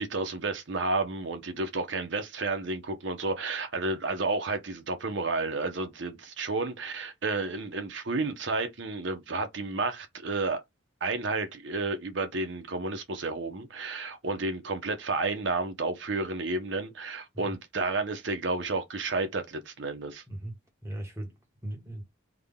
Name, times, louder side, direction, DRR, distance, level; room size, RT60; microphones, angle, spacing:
voice 1, 0.0-10.6 11.0-20.2, right 3 dB, 65° right, 0.8 m, -31 dB
voice 2, 20.3-22.0, right 1 dB, 15° right, 1.2 m, -39 dB
3.6 x 2.3 x 3.6 m
head